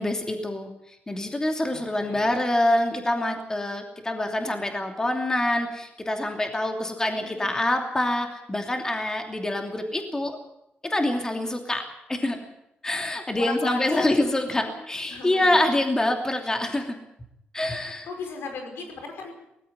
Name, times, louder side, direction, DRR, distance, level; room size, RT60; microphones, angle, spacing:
voice 1, 0.0-10.4 10.8-11.8 12.1-12.4 12.8-17.0 17.5-18.1, left 1 dB, 15° left, 4 dB, 2.9 m, -26 dB
voice 2, 1.7-2.3 7.1-7.6 13.3-14.8 15.1-15.6 18.0-19.3, left 4 dB, 90° left, 5 dB, 5.2 m, -36 dB
18.5 x 15.5 x 9.4 m, 0.82 s
cardioid pair, 120°, 4 cm